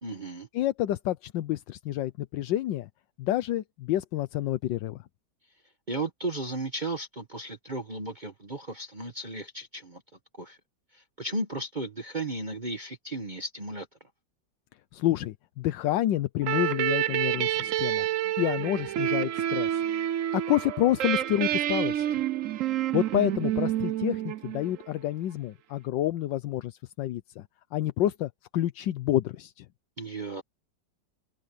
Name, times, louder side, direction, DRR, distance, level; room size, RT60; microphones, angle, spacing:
voice 1, 0.0-0.5 5.9-10.0 10.4-10.6 10.9-13.9 30.0-30.4, right 2 dB, 30° right, 1.3 m, -35 dB
voice 2, 0.5-2.9 3.2-5.0 14.9-18.0 18.4-19.8 20.3-22.2 22.9-27.4 27.7-29.6, left 13 dB, 80° left, 1.4 m, -28 dB
sound 1, 16.4-24.9, right 12 dB, 65° right, 0.8 m, -28 dB
omnidirectional pair, 2.0 m